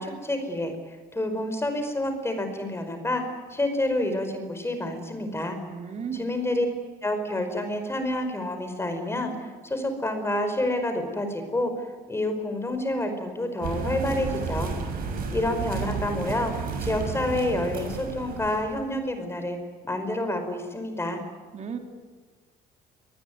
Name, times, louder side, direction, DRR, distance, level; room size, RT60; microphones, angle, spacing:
voice 1, 0.0-3.2 3.5-5.6 6.2-6.7 7.0-11.7 12.1-14.7 15.3-16.5 16.8-19.6 19.8-21.2, left 1 dB, 15° left, 7 dB, 5.2 m, -28 dB
voice 2, 5.7-6.3 21.5-21.8, right 7 dB, 45° right, 5 dB, 3.6 m, -34 dB
sound 1, 13.6-18.9, right 4 dB, 60° right, 6.9 m, -32 dB
24.0 x 20.0 x 9.6 m, 1.4 s
cardioid pair, 110°, 17 cm